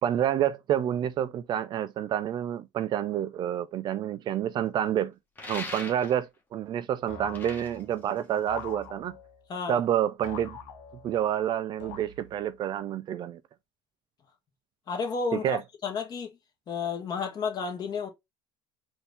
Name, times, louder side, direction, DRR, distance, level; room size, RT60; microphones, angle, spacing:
voice 1, 0.0-5.1 5.5-9.1 9.7-10.6 11.0-13.4 15.3-15.6, right 10 dB, 40° right, 0.4 m, -28 dB
sound 1, 5.4-6.4 7.1-8.8, left 2 dB, 15° left, 1.3 m, -41 dB
sound 2, 7.1-8.0 8.5-9.4 10.2-11.3 11.8-12.5, left 6 dB, 70° left, 1.2 m, -43 dB
voice 2, 14.9-16.4 16.7-18.1, left 5 dB, 35° left, 1.5 m, -32 dB
4.5 x 2.7 x 3.3 m
cardioid pair, 130°, 11 cm